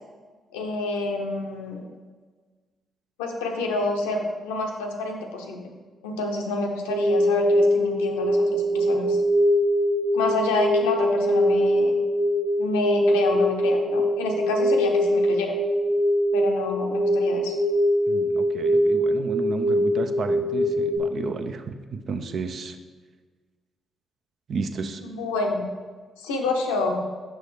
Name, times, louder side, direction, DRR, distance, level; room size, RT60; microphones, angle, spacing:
voice 1, 0.5-1.9 3.2-5.7 6.0-9.2 10.1-12.0 12.6-15.5 16.3-17.5 25.0-25.7 26.2-27.0, left 2 dB, 80° left, 2 dB, 0.6 m, -28 dB
sound 1, 6.9-21.0, equal, 90° right, 1.1 m, -22 dB
voice 2, 18.1-21.8 22.1-22.7 24.5-25.0, right 4 dB, 55° right, 7 dB, 0.5 m, -32 dB
6.2 x 5.6 x 3.3 m, 1.4 s
hypercardioid pair, 40°, 0 cm